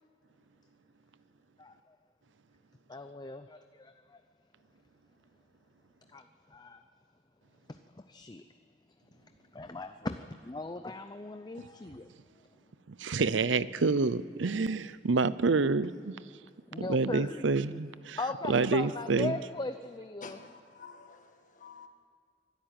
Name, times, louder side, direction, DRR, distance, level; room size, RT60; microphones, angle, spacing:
voice 1, 2.9-4.2 6.1-6.2 6.5-6.8 8.0-8.4 9.5-12.1 16.7-17.5 18.2-20.4, left 2 dB, 20° left, 8 dB, 0.6 m, -38 dB
voice 2, 13.0-16.1 16.8-18.2 18.5-19.4, right 4 dB, 80° right, 16 dB, 0.6 m, -28 dB
voice 3, 20.2-21.9, left 4 dB, 45° left, 5 dB, 1.8 m, -50 dB
23.0 x 12.5 x 9.1 m, 2.3 s
head